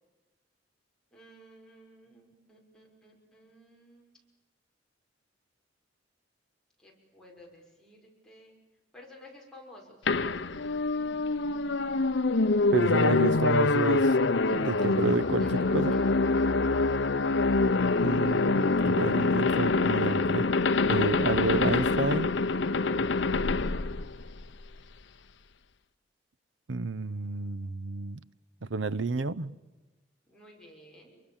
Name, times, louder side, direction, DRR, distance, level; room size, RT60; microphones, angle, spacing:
voice 1, 1.1-4.2 6.8-8.5 8.9-10.1 14.5-15.1 15.4-16.5 30.3-31.2, left 1 dB, 5° left, 6.1 m, -53 dB
sound 1, 10.1-24.8, left 3 dB, 75° left, 0.8 m, -25 dB
voice 2, 12.7-14.2 14.5-15.5 15.7-15.9 18.0-20.5 20.9-22.3 26.7-28.2 28.6-29.6, right 3 dB, 85° right, 0.8 m, -30 dB
28.0 x 24.5 x 7.3 m
head